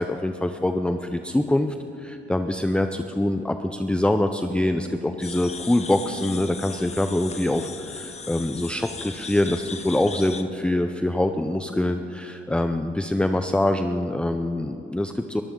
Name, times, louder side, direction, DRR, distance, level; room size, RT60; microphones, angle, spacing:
voice 1, 0.0-15.4, left 1 dB, 5° left, 7 dB, 0.6 m, -24 dB
sound 1, 5.2-10.4, left 5 dB, 35° left, 1.1 m, -38 dB
22.5 x 12.5 x 3.8 m, 2.9 s
cardioid pair, 90°, 20 cm